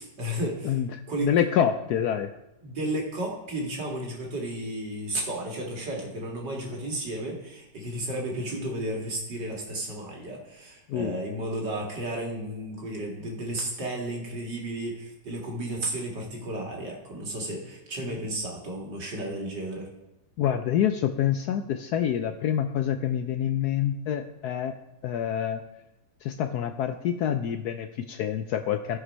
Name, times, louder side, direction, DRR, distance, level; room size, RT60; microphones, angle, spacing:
voice 1, 0.0-0.8 1.1-1.3 2.6-19.9, right 1 dB, 65° right, -1 dB, 2.7 m, -33 dB
voice 2, 1.2-2.3 10.9-11.2 20.4-24.7 25.0-25.6 26.2-29.0, left 9 dB, 70° left, 8 dB, 1.0 m, -26 dB
14.0 x 6.0 x 5.5 m, 0.92 s
omnidirectional pair, 2.0 m